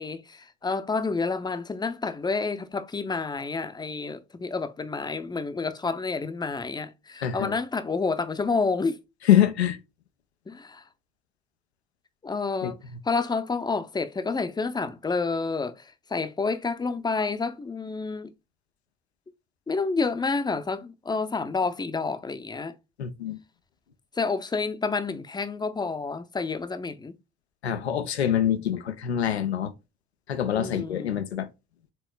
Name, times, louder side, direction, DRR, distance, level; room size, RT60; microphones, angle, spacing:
voice 1, 0.0-9.0 10.5-10.8 12.2-12.8 13.0-18.3 19.7-22.7 24.2-27.2 30.5-31.2, left 4 dB, 15° left, 0.6 m, -29 dB
voice 2, 7.2-7.5 9.3-9.8 12.6-12.7 23.0-23.4 27.6-29.7 30.3-31.5, left 10 dB, 90° left, 0.5 m, -24 dB
4.4 x 3.6 x 2.4 m
figure-of-eight pair, 50°, 32 cm